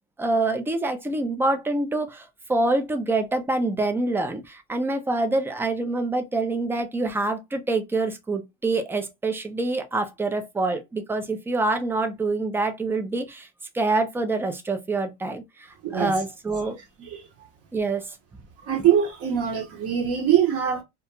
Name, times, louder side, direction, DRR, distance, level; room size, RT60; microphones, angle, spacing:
voice 1, 0.2-13.5 13.7-16.8 17.7-18.2 18.8-18.9, right 2 dB, 5° right, 0.3 m, -26 dB
voice 2, 15.8-16.2 17.1-17.2 18.6-20.8, right 9 dB, 45° right, 0.8 m, -23 dB
2.4 x 2.2 x 2.8 m
supercardioid pair, 120°, 34 cm